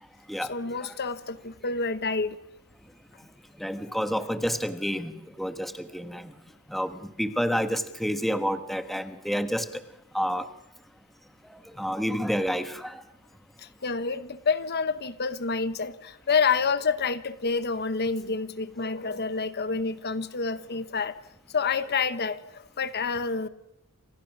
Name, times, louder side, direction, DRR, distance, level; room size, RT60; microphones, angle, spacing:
voice 1, 0.5-2.4 13.6-21.2 21.5-23.5, left 5 dB, 50° left, 13 dB, 1.0 m, -28 dB
voice 2, 3.6-6.3 6.7-9.8 10.1-10.5 11.7-13.0, equal, ahead, 9 dB, 1.3 m, -29 dB
28.5 x 26.5 x 6.1 m, 0.80 s
head